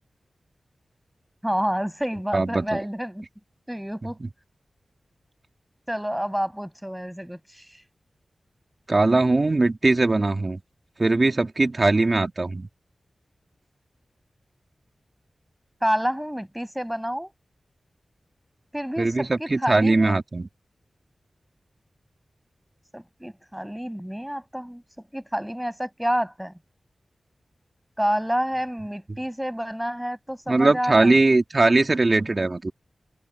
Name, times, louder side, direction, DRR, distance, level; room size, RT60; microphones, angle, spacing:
voice 1, 1.4-3.3 3.7-4.2 5.9-7.8 15.8-17.3 18.7-20.2 22.9-26.5 28.0-31.2, equal, 5° right, 6.1 m, -29 dB
voice 2, 2.3-2.8 8.9-10.6 11.0-12.7 19.0-20.5 30.5-32.7, right 2 dB, 40° right, 2.6 m, -20 dB
wide cardioid pair, 70°, 0 cm